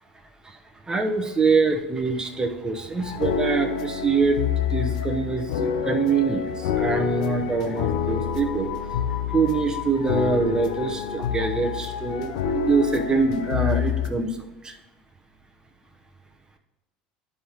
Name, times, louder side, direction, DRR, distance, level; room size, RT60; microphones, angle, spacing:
voice 1, 0.8-4.4 4.7-8.8 9.3-14.7, right 4 dB, 20° right, 4 dB, 0.8 m, -24 dB
sound 1, 3.0-14.1, left 7 dB, 80° left, 0.5 m, -27 dB
10.5 x 4.8 x 2.9 m, 1.0 s
hypercardioid pair, 75°, 4 cm